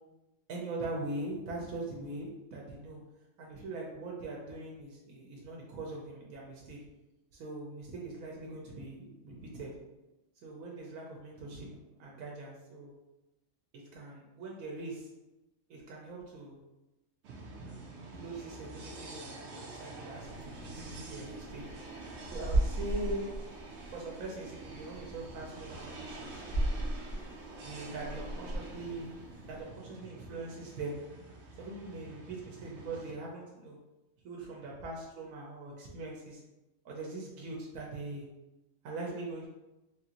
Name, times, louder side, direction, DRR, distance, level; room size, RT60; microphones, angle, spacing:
voice 1, 0.5-3.0 3.4-6.8 7.3-9.7 10.4-12.9 13.7-15.1 15.7-16.6 18.1-21.6 22.3-23.3 23.9-26.4 27.6-29.1 29.5-30.9 31.6-33.8 34.2-36.4 36.8-38.2 38.8-39.5, right 2 dB, 90° right, -2 dB, 1.0 m, -42 dB
sound 1, 17.2-33.1, right 2 dB, 65° right, 0.9 m, -47 dB
sound 2, 20.2-29.6, right 1 dB, 80° left, 1.3 m, -37 dB
3.5 x 2.5 x 2.8 m, 1.0 s
omnidirectional pair, 1.4 m